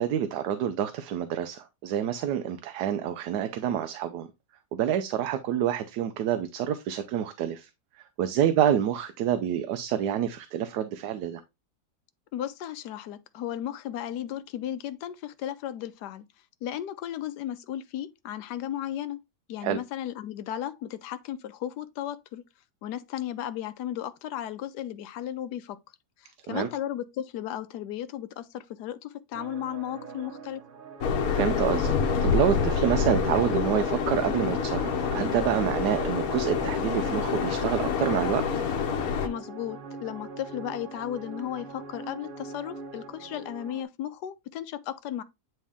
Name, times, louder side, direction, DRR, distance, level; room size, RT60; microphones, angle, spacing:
voice 1, 0.0-4.3 4.7-7.7 8.2-11.4 19.6-19.8 26.5-26.7 31.3-31.9 32.2-38.4, right 10 dB, 85° right, 1.2 m, -27 dB
voice 2, 12.3-16.2 16.6-19.2 19.5-22.4 22.8-25.8 26.2-30.6 39.2-45.2, left 11 dB, 80° left, 1.3 m, -35 dB
sound 1, 29.3-43.8, right 4 dB, 45° right, 0.7 m, -41 dB
sound 2, 31.0-39.3, left 6 dB, 65° left, 1.3 m, -27 dB
9.2 x 3.3 x 3.5 m
omnidirectional pair, 1.7 m